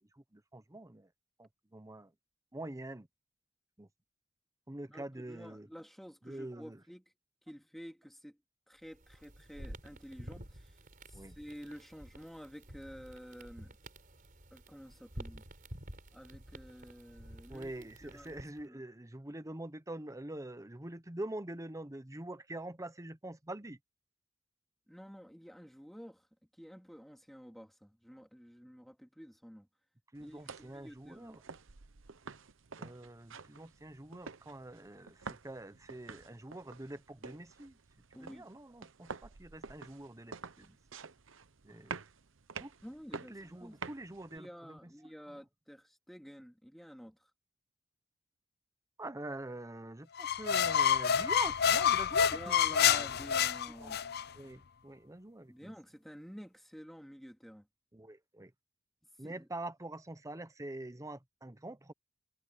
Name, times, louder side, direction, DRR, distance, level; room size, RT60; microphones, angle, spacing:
voice 1, 0.2-1.1 1.4-2.1 2.5-3.1 3.8-3.9 4.7-5.7 6.2-6.8 11.1-11.4 17.5-23.8 30.1-31.4 32.8-37.8 38.2-40.8 41.6-41.9 42.6-42.7 43.3-44.8 45.3-45.4 49.0-52.6 53.8-53.9 54.4-55.7 57.9-58.5 59.2-61.9, right 1 dB, 15° right, 0.9 m, -45 dB
voice 2, 4.9-7.0 7.5-8.4 8.7-10.8 11.1-13.8 14.5-15.4 16.1-18.8 24.9-26.3 26.6-29.7 30.2-31.4 38.1-38.5 42.8-43.8 44.3-47.2 52.3-54.1 55.5-57.7 59.2-59.5, equal, ahead, 2.7 m, -51 dB
sound 1, 8.8-18.6, right 1 dB, 45° right, 4.2 m, -50 dB
sound 2, 30.2-44.4, right 5 dB, 70° right, 0.9 m, -49 dB
sound 3, 50.2-54.2, left 8 dB, 55° left, 0.6 m, -28 dB
head